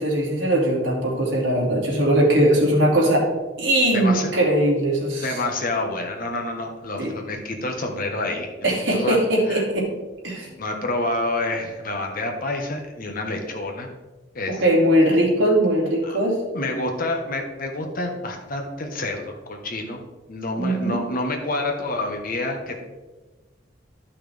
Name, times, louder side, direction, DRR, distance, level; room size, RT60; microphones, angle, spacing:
voice 1, 0.0-3.3 3.6-5.3 7.0-7.1 8.6-9.9 10.2-10.5 14.5-16.4 20.6-21.0, right 1 dB, 75° right, -3 dB, 2.7 m, -20 dB
voice 2, 3.9-4.3 5.2-9.2 9.5-9.6 10.6-13.9 14.3-14.6 16.0-16.2 16.5-20.0 20.3-22.7, left 2 dB, 50° left, 2 dB, 1.4 m, -28 dB
13.0 x 5.7 x 3.5 m, 1.2 s
head